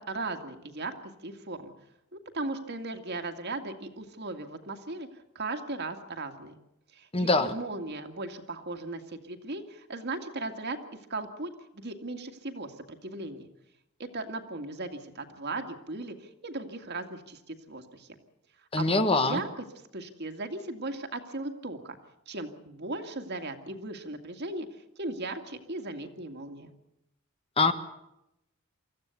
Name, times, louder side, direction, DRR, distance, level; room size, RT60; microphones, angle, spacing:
voice 1, 0.0-1.7 2.1-5.1 5.4-6.5 6.9-10.8 11.1-13.5 14.0-18.1 18.7-19.5 19.9-22.0 22.3-24.7 25.0-26.7, right 2 dB, 55° right, 5 dB, 2.2 m, -37 dB
voice 2, 7.1-7.5 18.7-19.4 27.6-27.7, left 3 dB, 25° left, 10 dB, 1.2 m, -23 dB
25.0 x 15.0 x 8.3 m, 0.85 s
head